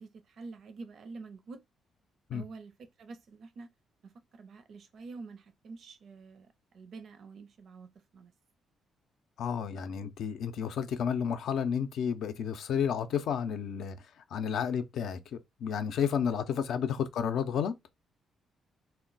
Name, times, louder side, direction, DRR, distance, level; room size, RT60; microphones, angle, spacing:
voice 1, 0.0-1.6 2.3-3.7 4.0-8.3, right 4 dB, 60° right, 0.5 m, -47 dB
voice 2, 9.4-14.0 14.3-17.7, left 7 dB, 70° left, 0.4 m, -31 dB
2.2 x 2.1 x 3.8 m
cardioid pair, 90°, 0 cm